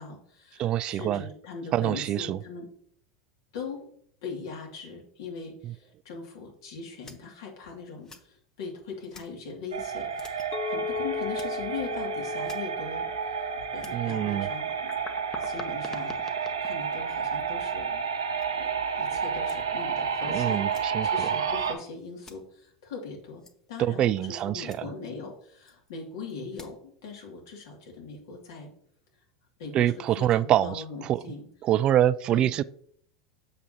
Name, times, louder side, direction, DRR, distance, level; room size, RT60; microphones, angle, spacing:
voice 1, 0.0-2.7 3.5-3.8 4.2-13.1 13.3-13.5 13.7-16.2 16.6-18.1 18.6-23.4 23.7-28.7 29.6-31.5 32.3-32.5, left 4 dB, 70° left, 0 dB, 2.3 m, -40 dB
voice 2, 0.6-1.2 1.7-2.4 5.6-5.7 13.9-14.5 20.3-21.3 23.8-24.8 29.7-30.8 31.1-31.2 31.6-32.6, right 12 dB, 40° right, 16 dB, 0.3 m, -25 dB
sound 1, 7.0-7.2 8.0-8.2 9.0-9.3 10.1-10.5 10.8-10.9 11.3-11.5 12.4-12.6 13.2-13.3 13.8-17.6 18.4-18.5 19.4-19.6 20.1-20.2 20.7-20.8 22.2-22.3 23.4-23.5 24.0-24.1 24.6-24.8 25.7-25.9 26.3-26.7, left 3 dB, 20° left, 0.9 m, -46 dB
sound 2, 9.7-21.7, right 6 dB, 90° right, 1.1 m, -31 dB
Chink clink, 10.5-14.8, left 8 dB, 40° left, 0.4 m, -37 dB
7.5 x 5.8 x 2.8 m, 0.62 s
hypercardioid pair, 90°, 2 cm